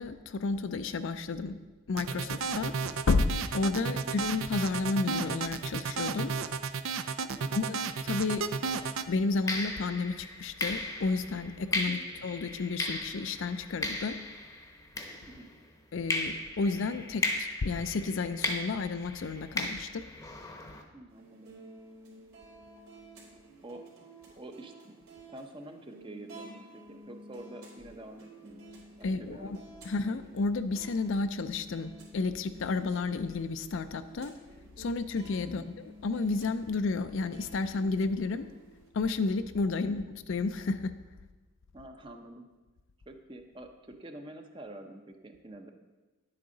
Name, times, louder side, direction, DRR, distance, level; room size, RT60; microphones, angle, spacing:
voice 1, 0.0-1.6 1.9-2.7 3.1-6.3 7.5-8.5 9.1-14.2 15.9-20.0 29.0-29.6 29.8-34.3 34.8-35.6 36.0-38.4 38.9-40.9, left 3 dB, 60° left, 11 dB, 0.4 m, -31 dB
sound 1, 2.0-9.1, right 5 dB, 65° right, 0.4 m, -33 dB
sound 2, 9.5-15.6 16.1-20.8, left 2 dB, 15° left, 0.8 m, -36 dB
voice 2, 20.9-21.5 23.6-23.8 24.3-25.0 25.3-28.7 29.0-29.6 35.5-35.7 39.9-40.1 41.7-42.4 43.1-45.7, right 1 dB, 25° right, 5 dB, 0.7 m, -47 dB
sound 3, 21.1-38.9, right 1 dB, 90° right, 3.3 m, -52 dB
10.5 x 8.6 x 3.9 m, 1.2 s
head